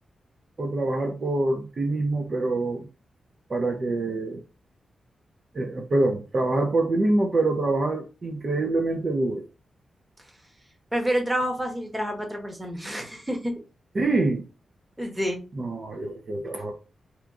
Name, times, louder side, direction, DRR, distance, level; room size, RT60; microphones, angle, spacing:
voice 1, 0.6-2.9 3.5-4.4 5.5-9.5 14.0-14.4 15.6-16.7, right 2 dB, 45° right, 0.4 m, -25 dB
voice 2, 10.9-13.5 15.0-15.4, equal, 10° right, 1.0 m, -28 dB
2.8 x 2.3 x 3.5 m
cardioid pair, 90°, 0 cm